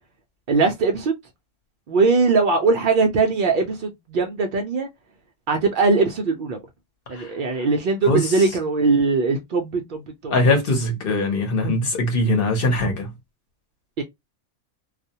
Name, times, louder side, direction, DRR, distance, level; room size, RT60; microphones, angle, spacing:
voice 1, 0.5-1.2 1.9-4.9 5.5-6.6 7.1-10.6 14.0-14.1, right 4 dB, 80° right, 0.4 m, -21 dB
voice 2, 10.3-13.1, left 2 dB, 50° left, 0.9 m, -21 dB
2.3 x 2.1 x 2.7 m
omnidirectional pair, 1.4 m